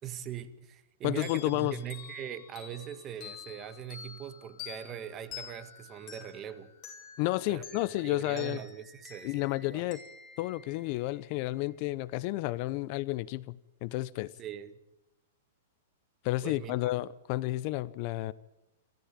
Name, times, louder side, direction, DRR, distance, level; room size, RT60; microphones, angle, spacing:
voice 1, 0.0-6.7 7.5-7.7 8.0-9.8 14.4-14.8 16.4-16.9, right 9 dB, 30° right, 1.7 m, -41 dB
voice 2, 1.0-1.8 7.2-8.6 9.2-10.0 10.4-14.3 16.2-18.3, left 18 dB, 45° left, 0.7 m, -31 dB
sound 1, 1.2-11.5, left 7 dB, 30° left, 7.3 m, -49 dB
28.0 x 13.5 x 9.0 m
hypercardioid pair, 130°, 0 cm